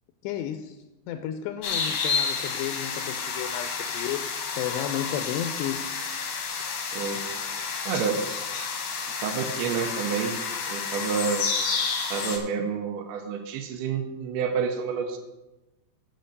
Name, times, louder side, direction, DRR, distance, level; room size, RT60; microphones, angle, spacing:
voice 1, 0.2-0.8 1.1-5.9, left 10 dB, 85° left, 8 dB, 2.6 m, -33 dB
sound 1, 1.6-12.4, left 5 dB, 70° left, 1.9 m, -30 dB
voice 2, 6.9-7.3 7.9-8.2 9.2-10.4 10.6-11.5 12.1-15.2, right 6 dB, 75° right, 3 dB, 2.5 m, -29 dB
7.8 x 6.4 x 6.6 m, 1.0 s
omnidirectional pair, 5.2 m